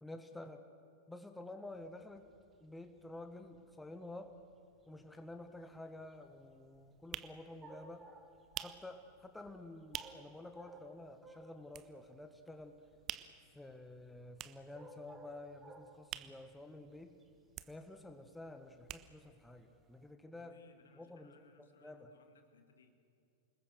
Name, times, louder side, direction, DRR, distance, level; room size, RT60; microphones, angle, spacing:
voice 1, 0.0-0.6 1.1-2.3 2.6-4.4 4.9-8.1 8.6-12.8 13.5-17.1 17.7-20.6 20.9-21.5 21.8-22.1, left 2 dB, 5° left, 7 dB, 1.6 m, -50 dB
sound 1, 1.7-20.1, right 2 dB, 20° right, 2.3 m, -60 dB
sound 2, 5.3-5.4 5.7-10.4 10.7-10.8 11.1-12.3 12.6-17.1 17.4-19.5 19.8-19.9 20.0-20.1, right 12 dB, 35° right, 0.9 m, -48 dB
voice 2, 20.3-22.9, left 5 dB, 65° left, 6 dB, 2.1 m, -64 dB
28.0 x 20.0 x 6.5 m, 2.5 s
figure-of-eight pair, 90°, 0 cm